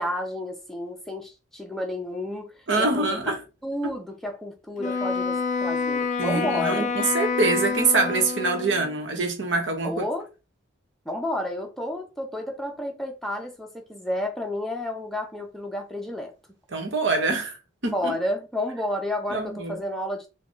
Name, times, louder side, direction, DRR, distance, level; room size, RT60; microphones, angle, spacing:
voice 1, 0.0-3.3 3.6-6.9 9.8-10.3 11.1-16.3 17.9-20.3, left 1 dB, ahead, 0.7 m, -31 dB
voice 2, 2.7-3.4 3.8-3.9 6.2-10.0 16.7-17.6 17.8-18.1 19.3-19.8, right 3 dB, 60° right, 1.1 m, -25 dB
Wind instrument woodwind instrument, 4.8-9.0, left 5 dB, 35° left, 0.3 m, -27 dB
3.8 x 2.3 x 3.7 m
head